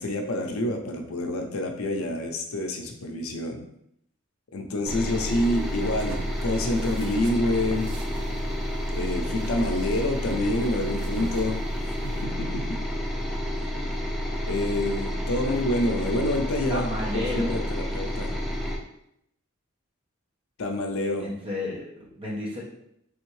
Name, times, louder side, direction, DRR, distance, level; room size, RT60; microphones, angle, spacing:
voice 1, 0.0-3.6 4.5-6.2 6.4-7.9 8.9-11.6 12.2-12.8 14.5-16.9 17.1-18.3 20.6-21.3, left 1 dB, 75° left, 4 dB, 0.5 m, -27 dB
sound 1, 4.9-18.8, equal, ahead, 0.8 m, -30 dB
sound 2, 5.1-12.2, right 2 dB, 80° right, 0.5 m, -42 dB
voice 2, 16.7-17.7 21.2-22.7, left 1 dB, 25° right, -4 dB, 1.2 m, -32 dB
3.5 x 3.4 x 3.1 m, 0.75 s
head